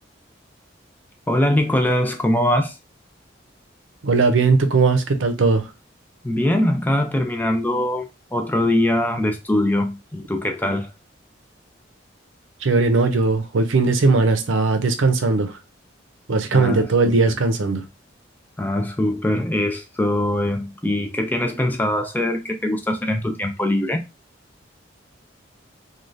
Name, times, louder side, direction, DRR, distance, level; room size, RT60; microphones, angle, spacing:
voice 1, 1.3-2.8 6.2-10.9 16.5-17.4 18.6-24.0, left 1 dB, 10° left, 0.3 m, -22 dB
voice 2, 4.0-5.7 12.6-15.6 16.3-17.8, right 3 dB, 90° right, 0.6 m, -18 dB
3.2 x 2.3 x 2.5 m
head